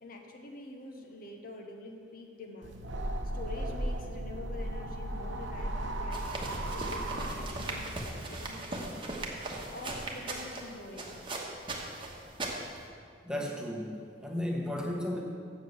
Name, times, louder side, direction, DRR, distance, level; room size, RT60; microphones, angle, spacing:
voice 1, 0.0-2.8 3.3-9.1 9.7-11.2, left 2 dB, 50° left, 3 dB, 0.9 m, -46 dB
sound 1, 2.6-8.0, right 1 dB, 70° right, 0.9 m, -36 dB
sound 2, 6.1-12.9, right 2 dB, 25° right, 1.1 m, -38 dB
voice 2, 13.2-15.2, left 1 dB, 5° right, -1 dB, 1.0 m, -34 dB
7.3 x 7.0 x 7.8 m, 2.2 s
head